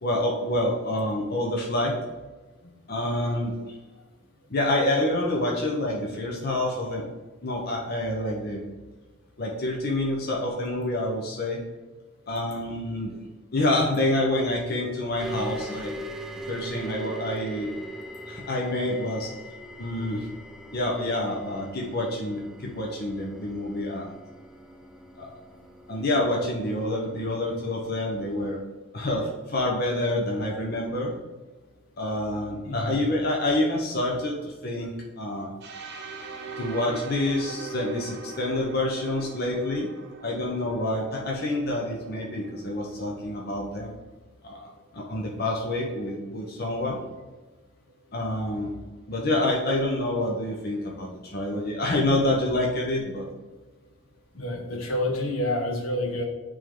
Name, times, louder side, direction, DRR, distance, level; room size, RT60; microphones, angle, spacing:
voice 1, 0.0-2.0 2.9-3.8 4.5-7.0 7.4-8.6 9.4-11.6 12.3-13.2 13.5-15.9 16.5-17.7 18.3-19.3 19.8-20.3 20.7-24.1 25.2-25.4 25.9-28.6 28.9-31.1 32.0-35.5 36.6-39.9 40.2-44.0 44.4-44.6 44.9-47.0 48.1-48.7 49.1-53.2, left 1 dB, 45° left, -1 dB, 0.8 m, -27 dB
sound 1, 15.2-28.6, right 2 dB, ahead, 0.3 m, -41 dB
voice 2, 32.6-33.0 54.3-56.3, left 1 dB, 75° left, 2 dB, 1.1 m, -28 dB
sound 2, 35.6-43.4, right 3 dB, 50° right, 0.7 m, -41 dB
8.1 x 3.5 x 3.7 m, 1.2 s
head